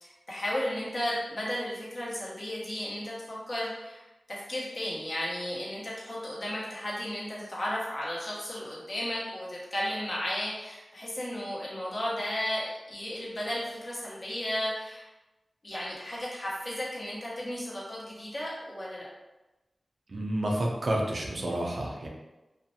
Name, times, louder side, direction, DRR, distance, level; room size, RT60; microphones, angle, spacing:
voice 1, 0.0-15.0 15.6-19.1, left 1 dB, 55° left, -6 dB, 0.9 m, -34 dB
voice 2, 20.1-22.1, right 1 dB, 65° right, -1 dB, 0.5 m, -30 dB
2.5 x 2.1 x 2.7 m, 1.1 s
cardioid pair, 45°, 0 cm